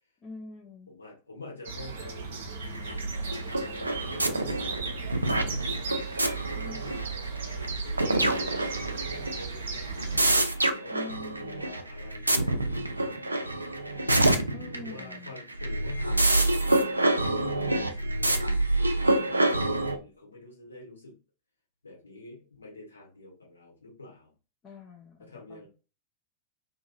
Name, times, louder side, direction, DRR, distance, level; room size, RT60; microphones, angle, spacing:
voice 1, 0.2-0.9 6.5-7.0 10.9-11.6 14.5-15.3 24.6-25.7, left 3 dB, 30° left, 1 dB, 0.7 m, -45 dB
voice 2, 0.9-6.0 6.5-8.3 9.1-11.0 11.3-13.6 14.7-21.2 21.8-24.3 25.2-25.7, left 2 dB, 75° left, -2 dB, 1.3 m, -48 dB
sound 1, 1.7-10.4, right 5 dB, 60° right, 0.7 m, -37 dB
sound 2, 2.6-20.0, right 1 dB, 85° right, 0.4 m, -27 dB
2.8 x 2.6 x 2.5 m, 0.32 s
figure-of-eight pair, 90°, 0 cm